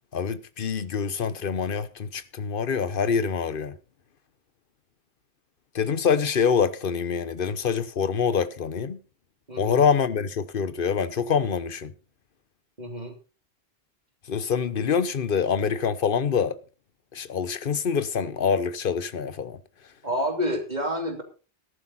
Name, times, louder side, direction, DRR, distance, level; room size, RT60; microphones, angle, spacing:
voice 1, 0.1-3.7 5.7-9.0 9.6-11.9 14.3-16.5 17.1-19.6, left 6 dB, 60° left, 1.1 m, -25 dB
voice 2, 12.8-13.1 20.0-21.2, equal, 40° right, 2.9 m, -28 dB
14.0 x 11.5 x 4.2 m
omnidirectional pair, 1.1 m